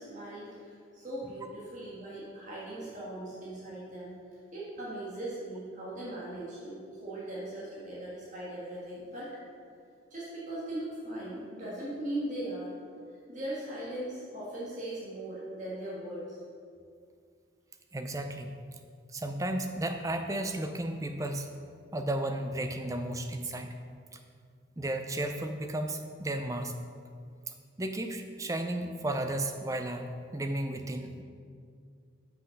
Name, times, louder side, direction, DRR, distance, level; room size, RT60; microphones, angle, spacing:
voice 1, 0.0-4.1 4.5-9.4 10.1-12.7 13.3-16.4, right 1 dB, 40° right, -8 dB, 1.7 m, -39 dB
voice 2, 17.9-18.5 19.1-21.5 21.9-23.7 24.1-24.2 24.8-26.8 27.8-31.2, right 1 dB, 15° right, 6 dB, 0.4 m, -33 dB
6.3 x 5.8 x 5.3 m, 2.2 s
head